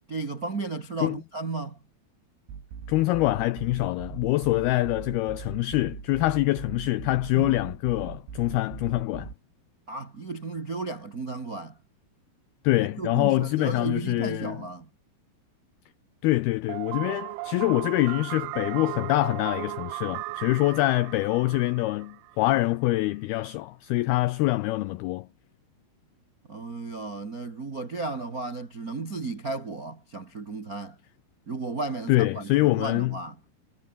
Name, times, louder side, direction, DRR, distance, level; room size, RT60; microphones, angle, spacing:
voice 1, 0.1-1.8 7.3-7.6 9.9-11.8 12.7-14.9 26.5-31.0 31.5-33.3, right 3 dB, 50° right, 1.0 m, -34 dB
sound 1, 2.5-9.3, right 7 dB, 70° right, 6.5 m, -41 dB
voice 2, 2.9-9.3 12.6-14.7 16.2-25.3 32.1-33.2, left 18 dB, 85° left, 2.2 m, -25 dB
sound 2, 16.7-22.5, right 20 dB, 90° right, 3.2 m, -36 dB
omnidirectional pair, 5.3 m